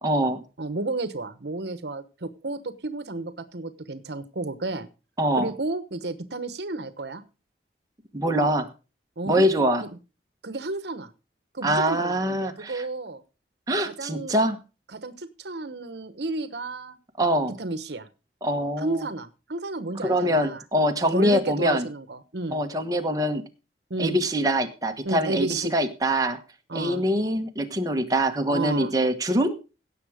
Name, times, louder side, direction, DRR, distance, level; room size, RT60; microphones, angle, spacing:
voice 1, 0.0-0.4 5.2-5.5 8.1-8.7 9.3-9.8 11.6-12.8 13.7-14.6 17.2-17.5 18.4-19.0 20.0-21.9 22.5-23.4 24.0-26.4 26.7-29.5, equal, 20° right, 4 dB, 1.3 m, -24 dB
voice 2, 0.6-4.9 5.4-7.2 9.2-9.4 9.8-10.0 10.4-11.1 11.5-13.2 13.8-14.3 14.9-17.0 17.6-18.1 18.8-20.6 21.1-22.6 23.9-24.2 25.0-25.7 26.7-27.0 28.5-28.9, right 2 dB, 70° right, 12 dB, 1.1 m, -32 dB
17.0 x 7.3 x 4.9 m, 0.32 s
head